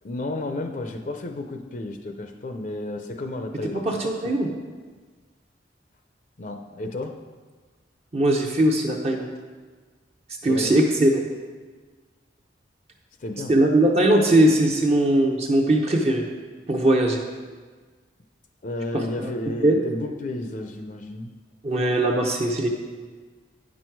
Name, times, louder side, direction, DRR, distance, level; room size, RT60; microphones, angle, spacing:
voice 1, 0.0-4.3 6.4-7.2 10.4-10.8 13.2-13.6 18.6-21.3, left 2 dB, 45° left, 5 dB, 0.5 m, -32 dB
voice 2, 3.7-4.5 8.1-9.3 10.4-11.2 13.5-16.2 16.7-17.2 18.9-19.3 19.6-19.8 21.6-22.7, right 1 dB, 35° right, 0 dB, 0.7 m, -20 dB
9.1 x 6.2 x 4.6 m, 1.4 s
head